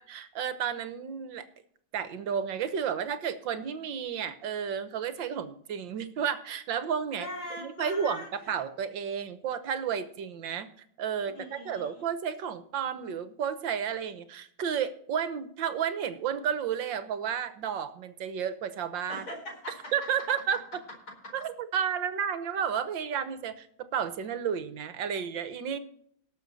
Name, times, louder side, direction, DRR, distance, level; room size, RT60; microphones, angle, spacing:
voice 1, 0.0-1.4 1.9-7.3 7.6-10.7 11.0-19.2 19.9-20.6 21.3-23.7 23.9-25.8, right 7 dB, 65° right, 11 dB, 1.7 m, -32 dB
voice 2, 7.1-8.5 11.2-12.1 19.1-19.9 21.2-21.3, left 1 dB, 45° left, 1 dB, 4.7 m, -41 dB
18.5 x 7.1 x 4.1 m, 0.66 s
omnidirectional pair, 2.3 m